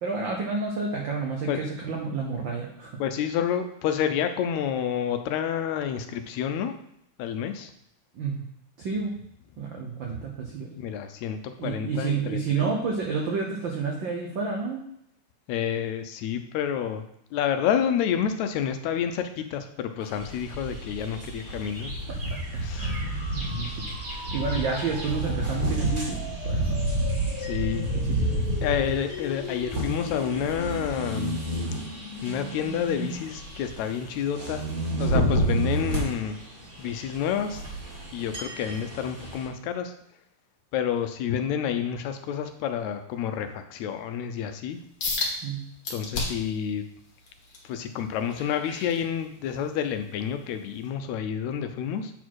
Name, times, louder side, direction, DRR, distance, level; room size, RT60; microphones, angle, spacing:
voice 1, 0.0-2.9 8.2-8.4 8.8-9.1 9.6-10.7 11.6-14.8 22.7-23.7 24.3-26.2 26.4-27.0 45.4-45.6, right 5 dB, 75° right, 0 dB, 1.1 m, -30 dB
voice 2, 3.0-6.8 7.2-7.7 10.8-12.7 15.5-17.0 17.3-21.9 22.3-22.9 27.4-27.9 28.3-31.4 32.2-34.7 35.0-36.4 36.8-37.6 38.1-39.9 40.7-44.8 45.9-46.8 47.6-52.1, left 8 dB, 80° left, 7 dB, 1.9 m, -29 dB
sound 1, 20.0-39.5, right 1 dB, 35° right, 1.9 m, -30 dB
sound 2, 22.8-33.1, left 3 dB, 35° left, 2.0 m, -39 dB
sound 3, 45.0-45.3 45.8-46.5 47.0-49.6 50.1-50.3 50.9-51.0, left 3 dB, 55° left, 2.2 m, -33 dB
7.9 x 4.2 x 4.6 m, 0.72 s
omnidirectional pair, 3.3 m